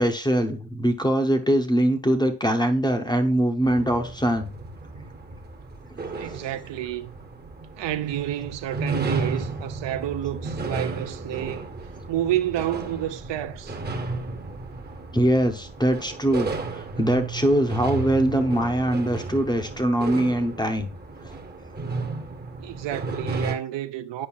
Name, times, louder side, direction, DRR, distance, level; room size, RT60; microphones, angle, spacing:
voice 1, 0.0-4.5 15.1-20.9 21.2-21.3, right 1 dB, 10° left, 0.7 m, -22 dB
sound 1, 3.6-23.5, right 3 dB, 20° right, 0.8 m, -33 dB
voice 2, 6.1-7.1 7.7-11.7 12.1-13.8 22.6-24.3, right 13 dB, 65° right, 0.6 m, -29 dB
8.7 x 5.1 x 2.3 m
cardioid pair, 110°, 47 cm